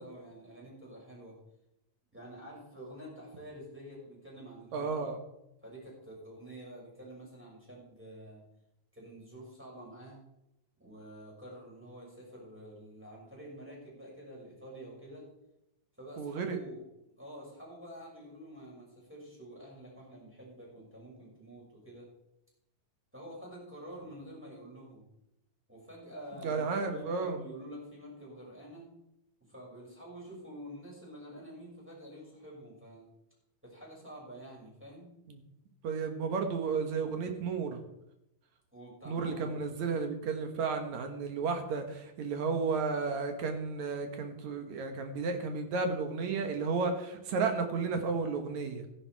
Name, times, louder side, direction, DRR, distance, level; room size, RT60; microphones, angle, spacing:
voice 1, 0.0-1.4 2.1-5.1 5.6-8.4 8.9-10.2 10.8-15.3 16.0-16.8 17.2-22.1 23.1-25.1 25.7-28.9 29.5-33.1 33.6-35.1 38.7-39.6, right 1 dB, 5° right, -4 dB, 6.0 m, -48 dB
voice 2, 4.7-5.2 16.2-16.6 26.4-27.4 35.3-35.4 35.8-37.8 39.1-48.9, right 4 dB, 60° right, 6 dB, 2.4 m, -33 dB
14.0 x 11.0 x 4.7 m, 0.85 s
omnidirectional pair, 4.1 m